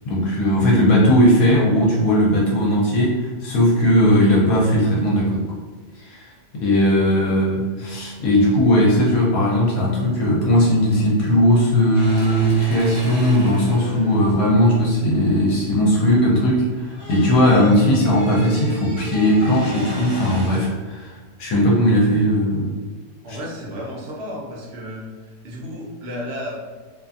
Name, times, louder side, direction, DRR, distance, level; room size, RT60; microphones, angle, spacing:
voice 1, 0.0-5.5 6.0-22.7 23.3-23.4, equal, 75° left, -3 dB, 1.0 m, -18 dB
sound 1, 11.9-16.2 16.5-20.9, right 1 dB, 30° left, 0.6 m, -34 dB
voice 2, 23.2-25.1 25.4-26.5, equal, 55° right, -4 dB, 0.8 m, -32 dB
2.6 x 2.4 x 2.4 m, 1.4 s
omnidirectional pair, 1.6 m